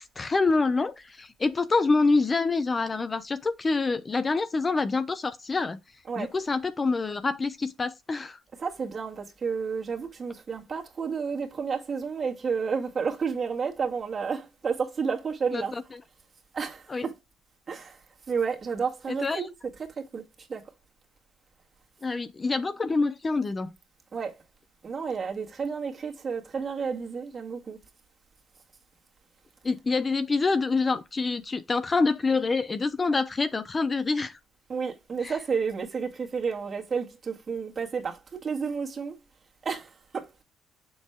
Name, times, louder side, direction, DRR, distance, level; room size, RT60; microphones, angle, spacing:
voice 1, 0.0-5.8 6.2-8.4 15.5-15.8 16.9-17.0 19.1-19.5 22.0-23.7 29.6-34.4 35.2-35.3, left 3 dB, 30° left, 0.7 m, -26 dB
voice 2, 8.6-15.7 16.5-17.1 17.7-18.0 18.3-19.5 19.8-20.7 24.1-24.4 24.8-27.8 34.7-39.2 39.6-40.4, right 5 dB, 40° right, 1.9 m, -31 dB
7.1 x 6.3 x 2.2 m
hypercardioid pair, 60°, 0 cm